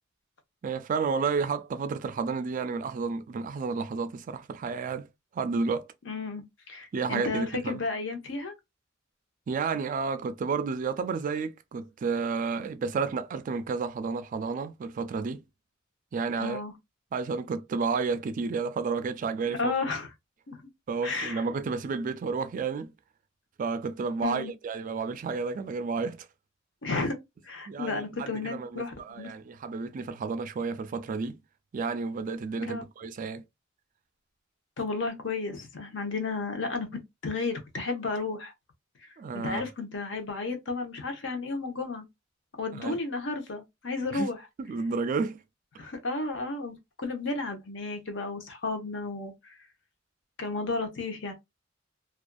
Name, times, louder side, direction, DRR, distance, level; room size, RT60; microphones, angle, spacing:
voice 1, 0.6-5.1 5.3-5.9 6.9-7.8 9.5-15.4 16.1-16.6 17.1-19.7 20.9-22.9 23.6-26.3 27.7-31.4 31.7-33.4 39.2-39.7 42.7-43.0 44.1-44.3 44.6-45.4 45.8-45.9, right 4 dB, 40° right, 0.3 m, -31 dB
voice 2, 6.1-8.5 16.4-16.7 19.5-20.1 20.5-20.6 21.0-21.4 24.2-24.5 26.8-27.2 27.4-29.3 32.6-32.8 34.8-38.5 39.0-39.1 39.3-42.0 42.6-44.4 45.8-49.6 50.4-51.3, left 3 dB, 65° left, 0.8 m, -33 dB
2.5 x 2.3 x 2.2 m
head